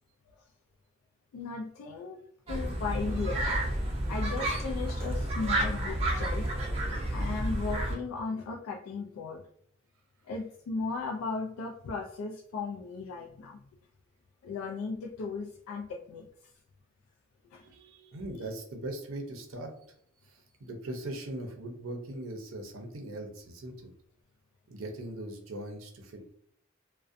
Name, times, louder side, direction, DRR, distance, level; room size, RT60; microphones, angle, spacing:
voice 1, 1.3-3.4 4.1-6.5 7.1-9.4 10.2-13.6 14.4-16.3 17.5-17.6, left 4 dB, 85° left, 1 dB, 0.3 m, -36 dB
sound 1, 2.5-7.9, right 1 dB, 30° right, 0.5 m, -30 dB
voice 2, 17.6-19.7 20.2-23.9 24.7-26.3, right 1 dB, 80° right, 4 dB, 0.5 m, -40 dB
2.4 x 2.1 x 2.4 m, 0.67 s
head